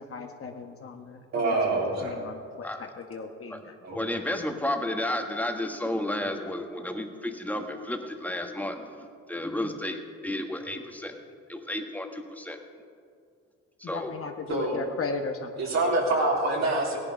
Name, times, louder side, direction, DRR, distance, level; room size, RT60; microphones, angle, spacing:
voice 1, 0.0-3.8 9.6-9.8 13.8-15.5 16.6-16.7, left 4 dB, 45° left, 4 dB, 1.2 m, -37 dB
voice 2, 1.3-2.2 3.8-4.0 14.5-14.8 15.6-17.0, right 2 dB, 60° right, -2 dB, 3.6 m, -25 dB
voice 3, 3.9-11.2 11.5-12.6 13.8-14.1, left 1 dB, 5° left, 4 dB, 1.5 m, -32 dB
17.0 x 11.0 x 5.3 m, 2.3 s
cardioid pair, 90°, 30 cm